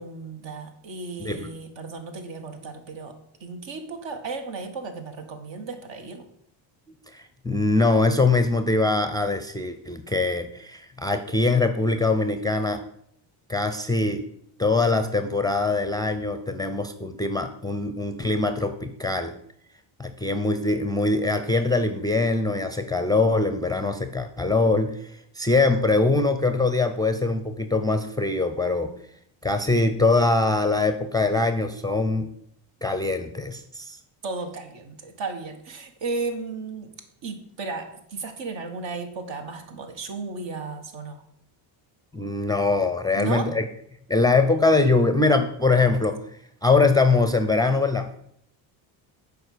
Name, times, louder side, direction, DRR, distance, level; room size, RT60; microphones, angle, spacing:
voice 1, 0.0-3.1 3.4-6.2 34.2-36.9 37.2-41.2 43.2-43.5, right 4 dB, 60° right, 6 dB, 1.7 m, -34 dB
voice 2, 7.1-12.8 13.5-14.2 14.6-19.3 20.0-28.9 29.4-32.3 32.8-34.0 42.1-43.6 44.1-46.2 46.6-48.1, left 3 dB, 10° left, 8 dB, 0.5 m, -23 dB
7.6 x 5.0 x 6.6 m, 0.71 s
cardioid pair, 100°, 50 cm